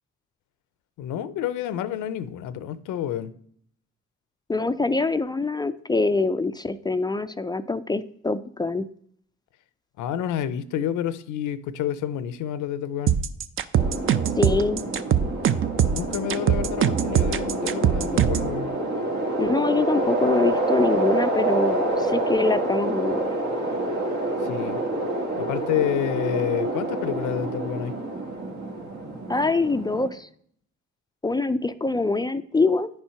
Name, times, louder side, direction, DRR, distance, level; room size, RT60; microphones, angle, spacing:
voice 1, 1.0-3.3 10.0-13.1 15.8-18.7 24.4-24.8 25.4-28.0, left 10 dB, 85° left, 0.6 m, -29 dB
voice 2, 4.5-8.9 14.4-14.8 19.4-23.2 29.3-30.3 31.2-32.9, left 3 dB, 15° left, 0.3 m, -24 dB
sound 1, 13.1-18.5, right 9 dB, 45° right, 0.5 m, -22 dB
sound 2, 13.8-30.1, right 2 dB, 70° right, 1.5 m, -27 dB
9.4 x 4.4 x 5.7 m
cardioid pair, 90°, 30 cm